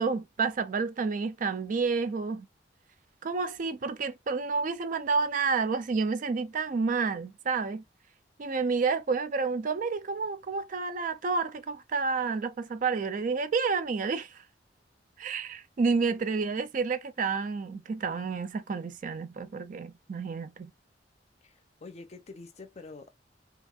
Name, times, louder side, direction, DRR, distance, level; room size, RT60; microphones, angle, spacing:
voice 1, 0.0-2.5 3.2-7.8 8.4-14.4 15.2-20.7, right 4 dB, 50° right, 0.4 m, -30 dB
voice 2, 21.4-23.2, left 3 dB, 40° left, 0.6 m, -47 dB
2.8 x 2.6 x 2.3 m
head